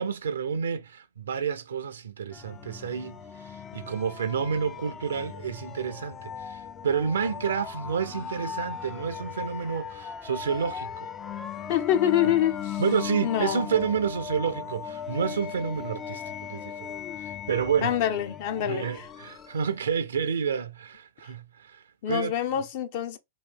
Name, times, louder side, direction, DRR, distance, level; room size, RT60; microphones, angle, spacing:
voice 1, 0.0-11.1 12.8-16.2 16.5-17.9 18.6-22.3, right 6 dB, 80° right, 0.4 m, -30 dB
sound 1, 2.3-19.8, left 8 dB, 25° left, 0.3 m, -38 dB
voice 2, 11.7-12.8 13.2-13.7 17.8-19.1 22.0-23.2, left 11 dB, 55° left, 0.6 m, -26 dB
3.0 x 2.5 x 3.5 m
hypercardioid pair, 110°, 0 cm